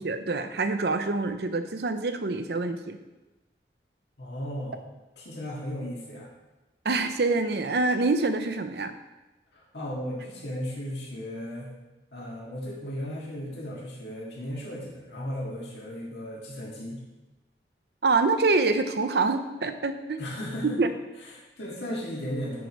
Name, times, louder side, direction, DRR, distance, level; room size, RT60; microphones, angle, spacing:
voice 1, 0.0-3.0 6.8-8.9 18.0-20.2 20.6-20.9, right 3 dB, 65° right, 9 dB, 0.6 m, -26 dB
voice 2, 4.2-4.8 5.2-6.3 9.5-11.7 12.1-17.0 20.2-20.8 21.2-22.7, equal, 75° left, -4 dB, 1.8 m, -35 dB
9.4 x 4.7 x 5.3 m, 1.1 s
head